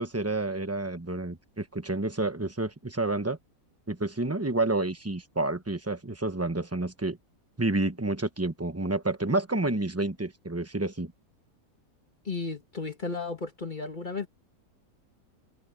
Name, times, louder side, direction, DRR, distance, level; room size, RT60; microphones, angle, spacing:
voice 1, 0.0-3.4 3.9-7.2 7.6-11.1, right 2 dB, 10° right, 0.8 m, -29 dB
voice 2, 12.3-14.3, left 3 dB, 30° left, 1.7 m, -34 dB
omnidirectional pair, 1.8 m